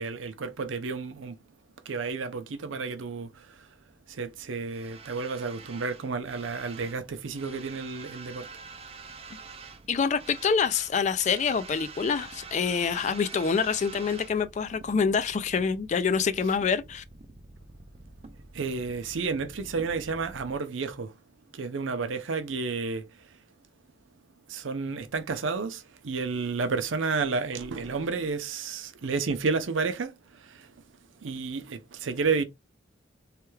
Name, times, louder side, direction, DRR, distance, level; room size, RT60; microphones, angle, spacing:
voice 1, 0.0-1.4 1.9-3.7 4.1-8.5 18.5-21.2 21.5-23.4 24.5-30.8 31.2-32.4, right 4 dB, 80° right, 0.6 m, -31 dB
sound 1, 3.4-20.6, right 4 dB, 30° right, 0.4 m, -47 dB
voice 2, 9.9-17.0, left 6 dB, 40° left, 0.3 m, -26 dB
3.3 x 2.2 x 3.1 m
head